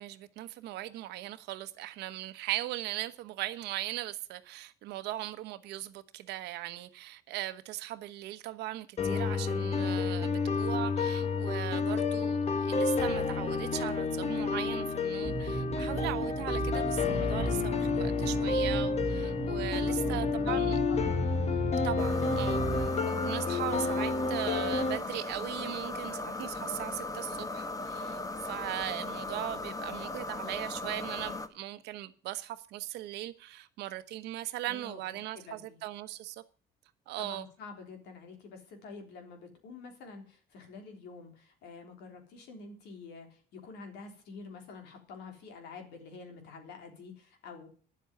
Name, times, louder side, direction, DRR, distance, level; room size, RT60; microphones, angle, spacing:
voice 1, 0.0-20.8 21.8-36.4 37.1-37.5, right 15 dB, 85° right, 1.1 m, -39 dB
sound 1, 9.0-25.0, left 4 dB, 40° left, 1.4 m, -30 dB
sound 2, 15.2-22.9, right 4 dB, 25° right, 1.3 m, -36 dB
voice 2, 19.7-21.2 34.7-35.0 35.3-35.8 37.2-47.7, left 4 dB, 85° left, 3.5 m, -48 dB
sound 3, 22.0-31.5, left 2 dB, 20° left, 1.3 m, -38 dB
10.0 x 7.6 x 9.3 m
cardioid pair, 110°, 17 cm